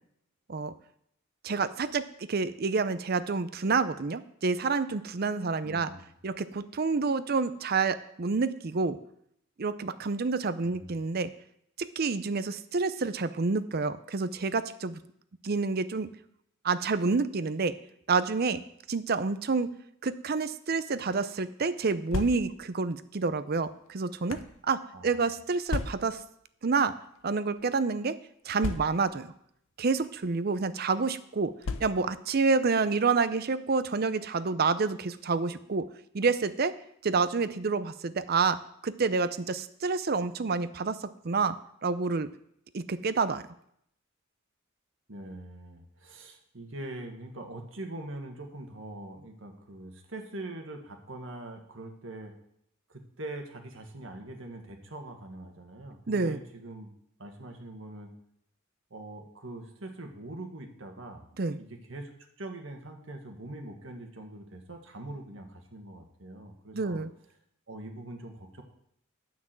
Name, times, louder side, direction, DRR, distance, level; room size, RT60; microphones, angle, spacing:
voice 1, 1.4-5.9 6.2-9.0 9.6-11.3 12.0-15.0 15.4-16.1 16.6-17.7 18.1-18.6 18.9-19.7 20.0-24.4 24.7-26.2 26.6-26.9 27.2-28.2 28.5-29.3 29.8-31.5 31.8-35.9 36.1-36.7 37.0-38.6 38.8-41.6 41.8-42.3 42.7-43.4 56.1-56.4 61.4-61.6 66.7-67.1, right 4 dB, 50° right, 13 dB, 0.6 m, -28 dB
voice 2, 5.6-6.1 10.6-10.9 24.9-25.3 45.1-52.3 52.9-56.9 57.2-58.1 58.9-61.2 61.6-67.0 67.7-68.6, right 1 dB, 70° right, 3 dB, 1.7 m, -43 dB
sound 1, 21.9-22.8 23.6-24.6 25.7-26.3 27.2-27.3 27.6-27.7 28.6-29.3 30.1-30.4 31.6-32.3, left 3 dB, 85° left, 0.7 m, -35 dB
9.5 x 6.0 x 7.6 m, 0.71 s
head